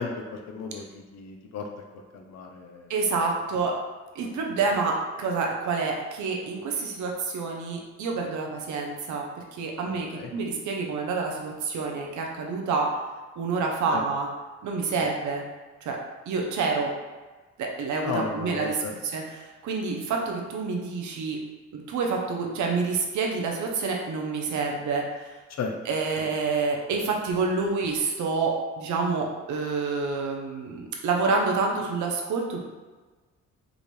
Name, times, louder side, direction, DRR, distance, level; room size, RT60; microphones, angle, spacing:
voice 1, 0.0-1.7 2.1-2.9 4.2-4.3 10.1-10.3 13.9-14.0 15.0-15.1 18.0-18.9 25.6-25.7 26.2-26.3, left 5 dB, 60° left, 3 dB, 0.7 m, -34 dB
voice 2, 2.9-3.7 4.1-9.2 9.5-12.9 13.4-14.3 14.6-15.4 15.8-16.0 16.3-16.9 17.6-21.4 21.7-25.3 25.9-32.6, right 4 dB, 70° right, 0 dB, 0.8 m, -28 dB
5.0 x 2.5 x 3.2 m, 1.3 s
cardioid pair, 90°, 30 cm